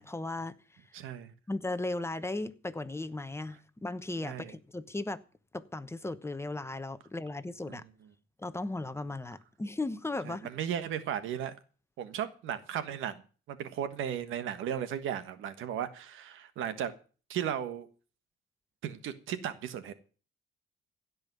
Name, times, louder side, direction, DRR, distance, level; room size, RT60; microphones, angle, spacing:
voice 1, 0.0-0.8 1.5-5.2 5.5-7.8 8.4-10.5, left 2 dB, 15° left, 1.0 m, -36 dB
voice 2, 0.9-1.3 4.2-4.5 7.7-7.8 10.2-11.5 12.0-13.2 13.5-16.9 17.3-17.9 18.8-19.9, right 9 dB, 85° right, 1.4 m, -35 dB
16.5 x 5.5 x 9.3 m
cardioid pair, 90°, 20 cm